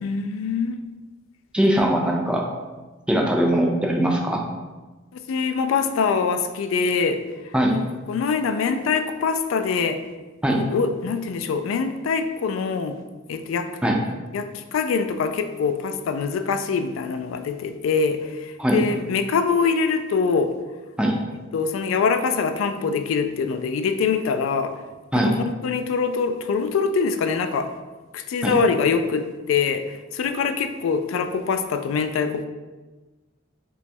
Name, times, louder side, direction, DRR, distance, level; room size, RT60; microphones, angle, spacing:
voice 1, 0.0-0.8 5.3-7.2 7.7-7.8 8.1-10.0 10.5-13.0 13.3-13.7 14.3-20.5 21.5-24.7 25.3-27.7 28.1-29.8 30.1-32.4, left 5 dB, 80° left, 9 dB, 0.3 m, -24 dB
voice 2, 1.5-2.5 3.1-4.4 7.5-7.8 10.4-10.6 13.8-14.0 18.6-18.8 21.0-21.1 25.1-25.3 28.4-28.5, right 1 dB, 5° right, -1 dB, 0.4 m, -20 dB
2.9 x 2.3 x 4.2 m, 1.2 s
head